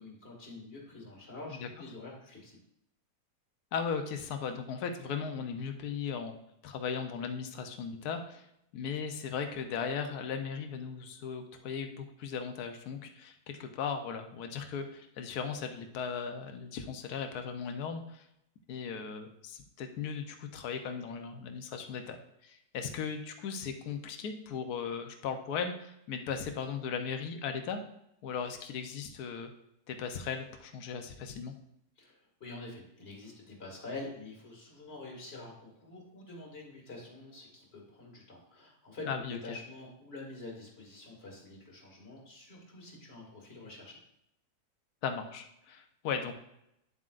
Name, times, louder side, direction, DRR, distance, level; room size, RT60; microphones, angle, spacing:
voice 1, 0.0-2.6 32.0-44.0, left 2 dB, 35° left, -2 dB, 2.3 m, -46 dB
voice 2, 3.7-6.4 6.6-8.5 8.7-18.2 18.7-22.2 22.4-27.8 28.2-29.5 29.9-31.5 39.1-39.6 45.0-46.4, left 6 dB, 65° left, 6 dB, 1.3 m, -37 dB
10.0 x 7.4 x 2.5 m, 0.79 s
omnidirectional pair, 1.9 m